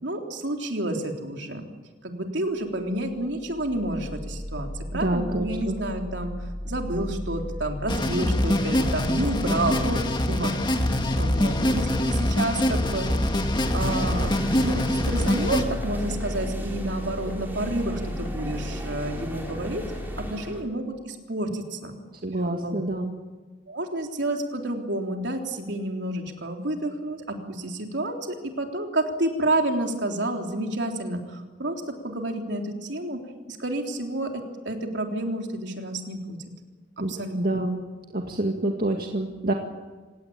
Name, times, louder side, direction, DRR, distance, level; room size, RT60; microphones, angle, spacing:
voice 1, 0.0-1.7 2.0-6.3 6.6-13.1 13.7-14.3 14.6-19.9 20.2-22.0 22.6-22.8 23.7-33.2 33.5-34.3 34.6-36.4 37.0-37.6, right 1 dB, 70° right, 2 dB, 3.7 m, -30 dB
sound 1, 3.0-20.3, equal, 55° left, 2.5 m, -35 dB
voice 2, 4.9-5.8 22.2-23.1 37.0-37.8 38.1-39.5, right 1 dB, 50° right, 2 dB, 2.0 m, -27 dB
sound 2, 7.9-15.6, left 1 dB, 25° left, 2.0 m, -24 dB
sound 3, 13.8-20.6, equal, 10° right, 4.5 m, -38 dB
27.0 x 17.5 x 9.0 m, 1.3 s
head